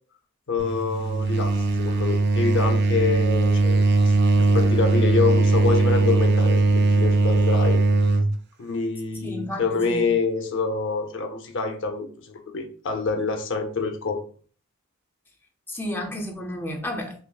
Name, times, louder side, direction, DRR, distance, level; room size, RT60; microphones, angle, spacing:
voice 1, 0.5-4.1 4.4-7.8 8.6-14.2, left 4 dB, 60° left, 0.6 m, -26 dB
sound 1, 0.6-8.3, right 3 dB, 50° right, 0.4 m, -20 dB
voice 2, 9.1-10.1 15.7-17.2, left 1 dB, 10° left, 0.5 m, -32 dB
5.6 x 2.0 x 2.2 m
head